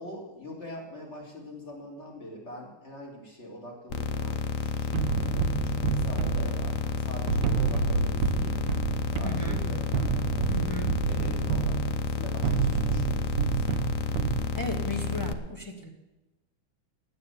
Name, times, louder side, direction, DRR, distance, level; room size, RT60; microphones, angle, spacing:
voice 1, 0.0-8.6 9.1-10.7 11.1-13.8, left 1 dB, 35° left, -2 dB, 3.9 m, -44 dB
sound 1, 3.9-15.3, left 5 dB, 55° left, 1.0 m, -31 dB
sound 2, 4.9-14.9, right 6 dB, 75° right, 1.4 m, -29 dB
voice 2, 9.2-9.6 10.5-10.9 14.6-15.9, left 1 dB, 10° left, 1 dB, 2.0 m, -35 dB
9.7 x 9.3 x 9.4 m, 1.1 s
omnidirectional pair, 2.1 m